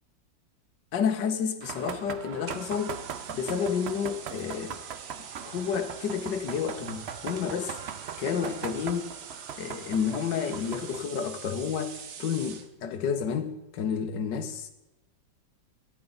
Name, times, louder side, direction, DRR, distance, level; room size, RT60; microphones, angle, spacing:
voice 1, 0.9-3.0 3.3-4.8 5.5-7.7 8.2-9.1 9.6-14.7, left 7 dB, 65° left, 7 dB, 1.8 m, -30 dB
sound 1, 1.6-11.0, right 8 dB, 80° right, 0.5 m, -40 dB
sound 2, 2.4-12.7, right 6 dB, 45° right, 1.0 m, -45 dB
23.0 x 9.4 x 4.0 m, 1.0 s
omnidirectional pair, 2.1 m